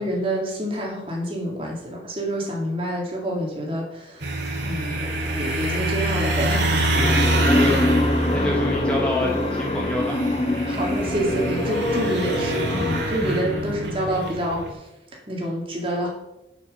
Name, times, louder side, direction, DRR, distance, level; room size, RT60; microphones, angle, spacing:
voice 1, 0.0-4.3 4.6-6.6 7.5-7.6 10.7-14.6 15.3-16.1, right 1 dB, 30° right, -1 dB, 2.4 m, -27 dB
sound 1, 4.2-14.7, right 1 dB, 80° right, 2.2 m, -26 dB
sound 2, 6.9-13.0, left 1 dB, 30° left, 0.8 m, -24 dB
voice 2, 6.9-7.9 8.3-10.3 10.5-10.8 12.7-12.8 13.2-13.7, left 1 dB, 5° left, -2 dB, 1.1 m, -29 dB
6.9 x 6.6 x 6.8 m, 0.92 s
head